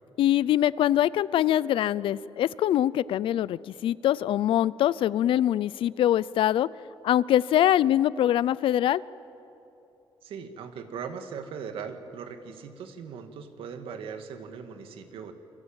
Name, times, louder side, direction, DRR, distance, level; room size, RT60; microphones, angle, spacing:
voice 1, 0.2-6.7 7.0-9.0, left 12 dB, 75° left, 20 dB, 0.6 m, -23 dB
voice 2, 10.2-15.3, right 6 dB, 85° right, 7 dB, 2.1 m, -39 dB
28.5 x 22.5 x 9.0 m, 2.8 s
cardioid pair, 140°, 9 cm